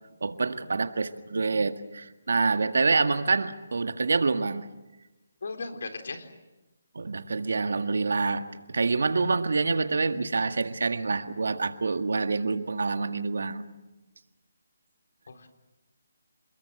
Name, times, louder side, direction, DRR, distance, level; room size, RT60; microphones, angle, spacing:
voice 1, 0.2-4.7 7.0-13.6, right 4 dB, 75° right, 8 dB, 1.8 m, -27 dB
voice 2, 5.4-6.3 15.3-15.5, left 3 dB, 65° left, 5 dB, 3.9 m, -36 dB
28.5 x 21.5 x 7.7 m, 1.1 s
hypercardioid pair, 160°, 0 cm